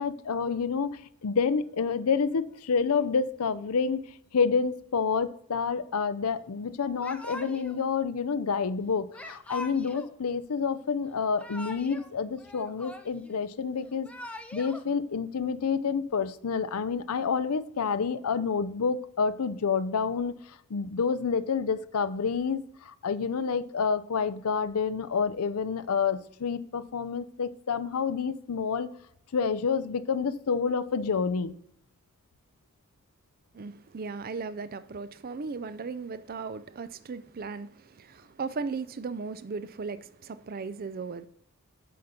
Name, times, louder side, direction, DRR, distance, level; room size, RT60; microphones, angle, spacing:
voice 1, 0.0-4.0 4.3-14.1 14.5-20.3 20.7-28.9 29.3-31.5, left 5 dB, 80° left, 0.5 m, -28 dB
Yell / Crying sobbing, 7.0-7.8 9.1-10.1 11.2-12.1 12.4-13.4 13.9-14.8, left 2 dB, 5° left, 0.5 m, -42 dB
voice 2, 33.5-41.3, right 4 dB, 40° right, 0.4 m, -37 dB
7.7 x 5.1 x 5.8 m
head